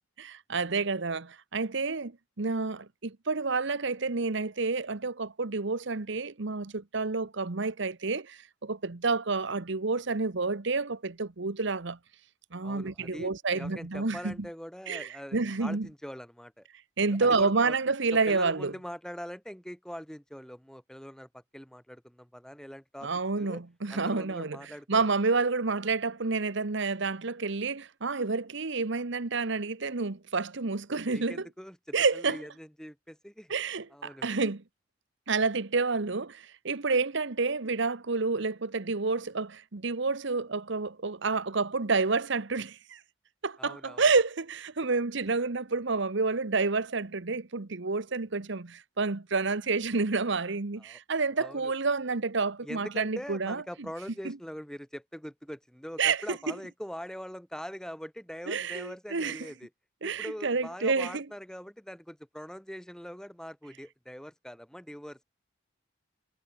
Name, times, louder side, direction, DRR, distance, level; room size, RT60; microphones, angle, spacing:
voice 1, 0.2-12.0 12.5-14.5 14.9-15.9 17.0-18.7 23.0-31.5 31.9-32.4 33.5-34.6 35.3-43.0 43.4-53.9 54.2-54.4 56.0-56.5 58.5-59.5 60.0-61.3, right 4 dB, 65° right, 1.1 m, -29 dB
voice 2, 12.6-16.7 17.1-17.7 18.1-23.1 23.4-23.6 23.9-25.1 31.1-33.5 33.9-34.3 43.6-44.1 50.8-51.0 51.4-51.7 52.6-59.7 60.0-65.2, equal, 5° left, 6.6 m, -43 dB
head